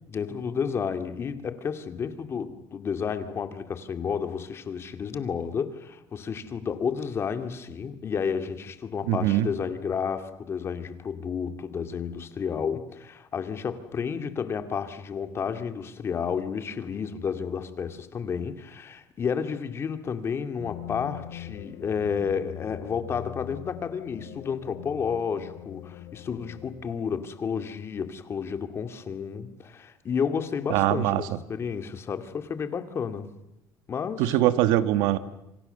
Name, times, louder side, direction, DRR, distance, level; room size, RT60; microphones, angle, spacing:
voice 1, 0.1-33.3 33.9-34.4, left 6 dB, 35° left, 2.4 m, -31 dB
voice 2, 9.1-9.5 30.7-31.2 34.2-35.2, right 13 dB, 90° right, 1.7 m, -22 dB
sound 1, 20.6-27.1, left 13 dB, 70° left, 1.4 m, -42 dB
28.0 x 26.0 x 6.9 m
cardioid pair, 135°, 8 cm